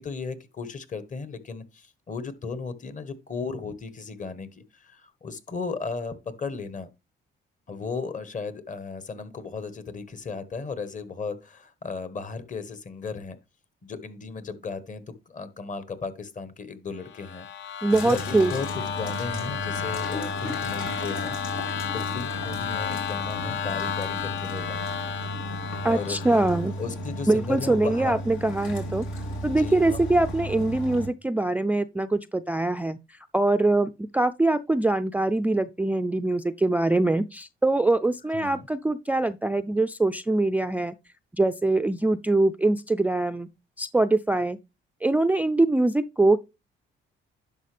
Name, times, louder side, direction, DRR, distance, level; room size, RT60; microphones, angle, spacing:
voice 1, 0.0-6.9 7.7-13.4 13.8-17.8 18.0-21.4 21.9-24.9 25.8-26.2 26.8-28.2 29.4-30.0 38.3-38.7, left 4 dB, 40° left, 1.3 m, -35 dB
sound 1, 17.0-26.7, left 8 dB, 65° left, 0.8 m, -33 dB
voice 2, 17.8-18.5 25.8-26.7 27.3-29.1 29.4-33.0 33.3-40.9 41.3-43.5 43.8-44.6 45.0-46.4, right 2 dB, 10° right, 0.4 m, -23 dB
sound 2, 17.9-31.1, equal, 85° left, 2.8 m, -34 dB
10.5 x 6.0 x 3.3 m
cardioid pair, 90°, 20 cm